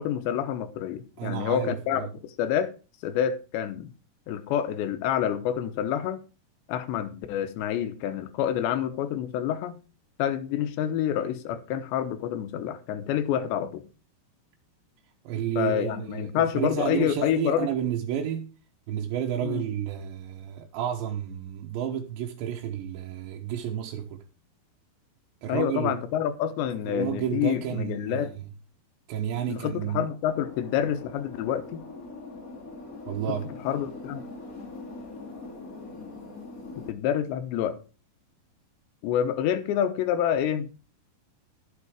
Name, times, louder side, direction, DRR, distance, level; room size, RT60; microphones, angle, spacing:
voice 1, 0.0-2.7 3.0-3.9 4.3-6.2 6.7-9.8 10.2-13.8 15.6-17.7 19.4-19.6 25.5-28.3 29.5-31.8 33.6-34.2 36.9-37.8 39.0-40.7, left 10 dB, 85° left, 3.3 m, -28 dB
voice 2, 1.2-2.1 15.3-18.5 18.9-24.2 25.4-26.0 26.9-28.5 29.1-30.1 33.1-33.5, right 10 dB, 90° right, 3.4 m, -31 dB
sound 1, 30.3-36.9, left 3 dB, 25° left, 2.1 m, -42 dB
11.5 x 7.8 x 5.0 m
omnidirectional pair, 5.0 m